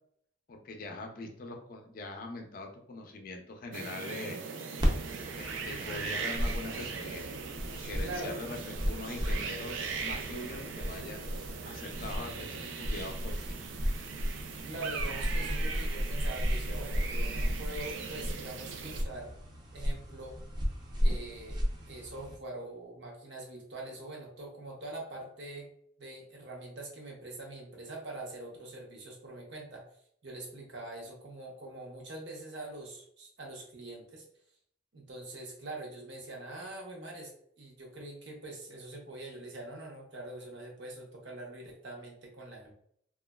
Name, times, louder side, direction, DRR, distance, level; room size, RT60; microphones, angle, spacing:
voice 1, 0.5-4.4 5.3-7.3 7.7-9.8 10.0-11.3 11.6-13.6, left 2 dB, 50° left, 4 dB, 0.4 m, -42 dB
sound 1, 3.7-19.0, right 5 dB, 90° right, 0.4 m, -40 dB
sound 2, 4.8-22.4, equal, 25° right, 0.5 m, -34 dB
voice 2, 8.0-8.4 14.6-19.3 19.7-20.4 21.0-21.6 21.9-25.7 26.0-29.8 30.2-34.2 34.9-37.3 37.6-42.7, right 2 dB, 65° right, -1 dB, 0.8 m, -43 dB
2.9 x 2.3 x 2.2 m, 0.66 s
head